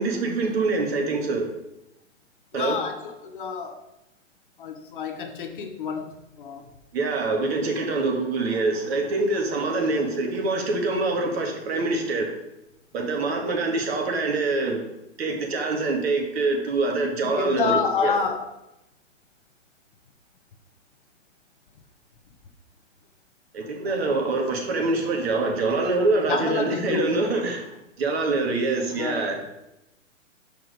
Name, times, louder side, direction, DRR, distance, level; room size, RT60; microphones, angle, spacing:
voice 1, 0.0-1.5 2.5-2.8 6.9-12.4 12.9-14.8 15.2-18.1 23.5-29.4, right 3 dB, 50° right, 2 dB, 1.7 m, -25 dB
voice 2, 2.5-3.9 4.6-6.7 17.4-18.6 26.1-27.1 28.9-29.3, left 5 dB, 40° left, 6 dB, 0.7 m, -28 dB
6.4 x 4.5 x 5.2 m, 0.88 s
hypercardioid pair, 155°, 40 cm